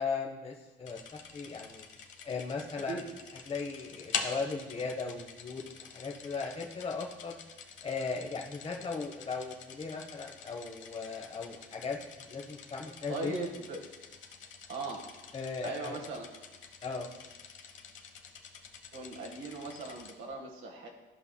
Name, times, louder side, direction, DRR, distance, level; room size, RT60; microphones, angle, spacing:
voice 1, 0.0-1.8 2.2-3.1 3.5-7.4 7.8-13.3 15.3-16.0 16.8-17.1, left 4 dB, 30° left, 0 dB, 0.9 m, -37 dB
sound 1, 0.8-20.1, left 6 dB, 70° left, 0.9 m, -46 dB
voice 2, 13.1-13.8 14.7-15.0 15.6-16.2 18.9-20.9, right 3 dB, 85° right, 0 dB, 1.5 m, -38 dB
14.0 x 5.4 x 2.2 m, 1.2 s
cardioid pair, 90°, 20 cm